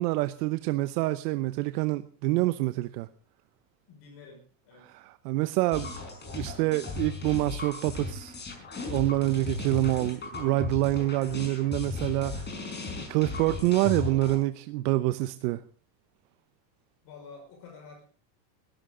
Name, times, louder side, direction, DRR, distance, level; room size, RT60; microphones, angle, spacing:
voice 1, 0.0-3.1 4.9-5.9 6.3-8.3 8.9-12.5 13.1-15.6, right 17 dB, 70° right, 0.9 m, -27 dB
voice 2, 3.9-5.0 9.7-10.2 17.0-18.0, left 4 dB, 50° left, 5.7 m, -50 dB
sound 1, 5.7-14.4, left 4 dB, 20° left, 5.4 m, -36 dB
20.5 x 13.5 x 3.8 m
supercardioid pair, 145°, 49 cm